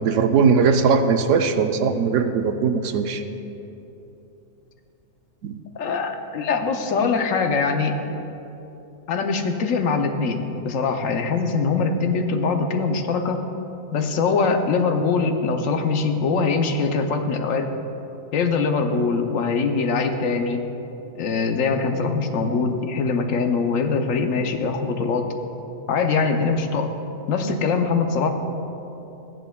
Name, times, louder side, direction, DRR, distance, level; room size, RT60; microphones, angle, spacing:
voice 1, 0.0-3.2 5.4-5.6, right 5 dB, 70° right, 7 dB, 0.9 m, -19 dB
voice 2, 5.8-8.0 9.1-13.4 13.9-17.7 18.3-20.7 21.2-25.3 25.9-26.9 27.3-28.3, left 4 dB, 80° left, 6 dB, 1.1 m, -22 dB
14.5 x 10.0 x 2.3 m, 3.0 s
omnidirectional pair, 1.4 m